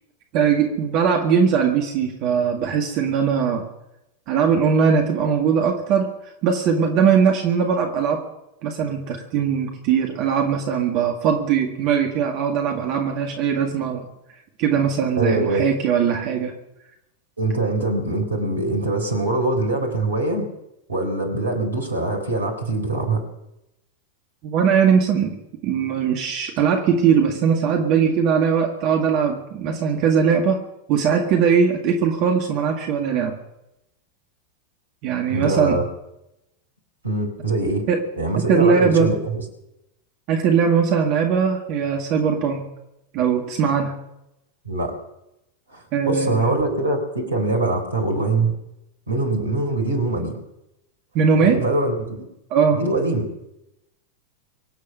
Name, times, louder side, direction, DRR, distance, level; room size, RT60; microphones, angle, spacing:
voice 1, 0.3-3.7 4.3-6.1 6.4-8.2 8.6-14.0 14.6-16.5 24.4-25.3 25.6-30.6 30.9-33.4 35.0-35.8 37.9-38.0 38.5-39.1 40.3-42.7 43.1-43.9 45.9-46.6 51.1-51.6 52.5-52.9, right 6 dB, 40° right, 2 dB, 1.9 m, -20 dB
voice 2, 15.2-15.6 17.4-20.5 20.9-23.2 35.3-35.8 37.0-37.8 38.2-39.4 44.6-45.0 45.7-48.5 49.1-50.4 51.4-52.3 52.7-53.3, right 2 dB, 75° right, 5 dB, 3.8 m, -23 dB
25.0 x 8.4 x 5.6 m, 0.88 s
figure-of-eight pair, 90°, 0 cm